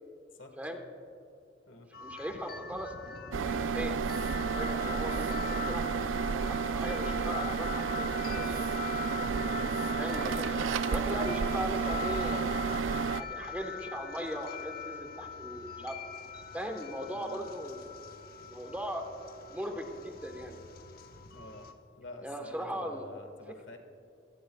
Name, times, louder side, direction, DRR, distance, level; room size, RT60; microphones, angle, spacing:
voice 1, 0.3-0.8 1.7-1.9 9.1-9.8 17.0-17.5 21.3-21.7 22.0-23.8, left 2 dB, 75° left, 5 dB, 1.7 m, -48 dB
sound 1, 1.9-21.7, left 6 dB, 55° left, 1.0 m, -42 dB
voice 2, 2.0-2.9 3.4-4.0 4.4-5.8 6.3-8.7 10.0-10.5 10.9-12.5 13.2-16.0 16.5-17.9 18.5-19.0 19.5-20.6 22.2-23.1, equal, 10° right, 4 dB, 1.2 m, -39 dB
sound 2, 3.3-13.2, right 5 dB, 85° right, 0.4 m, -31 dB
25.0 x 17.5 x 2.3 m, 2.6 s
head